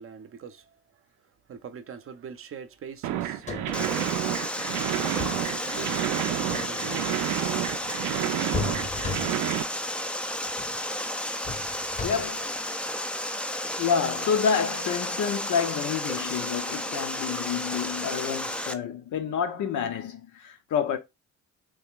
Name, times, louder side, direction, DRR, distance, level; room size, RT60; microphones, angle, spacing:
voice 1, 0.0-7.9, right 6 dB, 45° right, 0.6 m, -44 dB
sound 1, 3.0-9.6, right 13 dB, 90° right, 0.4 m, -30 dB
sound 2, 3.2-4.0 4.9-5.5 6.3-7.1 8.5-9.6 10.5-10.8 11.4-12.5 14.1-14.3, left 5 dB, 25° left, 0.7 m, -36 dB
Water, 3.7-18.7, left 1 dB, 5° left, 0.3 m, -32 dB
voice 2, 11.7-12.6 13.8-21.0, left 7 dB, 80° left, 0.8 m, -29 dB
3.2 x 2.4 x 3.6 m
cardioid pair, 90°, 30 cm